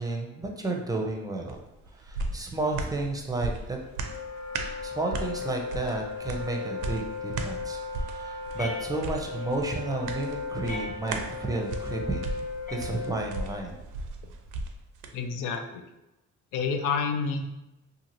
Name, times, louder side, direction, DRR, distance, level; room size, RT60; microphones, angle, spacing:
voice 1, 0.0-1.6 1.9-3.8 4.8-12.2 12.7-13.8, right 2 dB, 10° right, 2 dB, 0.5 m, -32 dB
sound 1, 1.5-15.1 15.5-15.6, right 3 dB, 80° right, 0.5 m, -37 dB
Wind instrument woodwind instrument, 3.8-13.7, left 5 dB, 45° left, 0.8 m, -37 dB
sound 2, 8.6-9.5 10.6-11.5 12.7-13.5, left 2 dB, 30° left, 1.1 m, -42 dB
voice 2, 15.1-15.9 16.5-17.5, left 5 dB, 90° left, 5 dB, 0.5 m, -29 dB
2.7 x 2.6 x 2.9 m, 0.96 s
cardioid pair, 90°, 30 cm